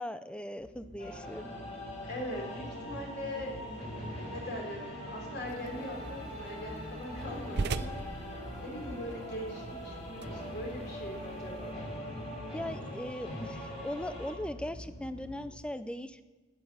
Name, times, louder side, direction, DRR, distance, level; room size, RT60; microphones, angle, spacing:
voice 1, 0.0-1.5 12.5-16.2, left 1 dB, 5° left, 12 dB, 0.5 m, -39 dB
sound 1, 0.6-15.5, equal, 80° left, 4.2 m, -48 dB
sound 2, 1.0-14.3, left 1 dB, 30° left, 4.9 m, -42 dB
voice 2, 2.0-8.3 8.6-11.8, equal, 55° left, 0 dB, 4.3 m, -41 dB
sound 3, 5.5-11.7, right 4 dB, 55° right, 0.5 m, -41 dB
12.5 x 10.5 x 7.2 m, 1.3 s
head